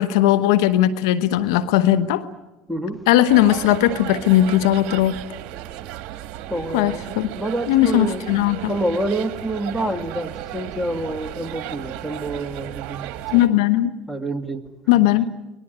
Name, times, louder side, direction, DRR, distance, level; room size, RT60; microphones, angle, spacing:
voice 1, 0.0-2.2 3.1-5.2 6.7-7.3 7.7-8.7 13.3-13.9 14.9-15.3, left 13 dB, 80° left, 15 dB, 1.1 m, -18 dB
voice 2, 2.7-3.0 6.5-8.2 8.7-13.4 14.1-14.6, right 1 dB, ahead, 5 dB, 2.7 m, -27 dB
sound 1, 3.3-13.5, right 13 dB, 65° right, 1.6 m, -34 dB
25.0 x 20.5 x 9.7 m, 1.0 s
supercardioid pair, 85°, 2 cm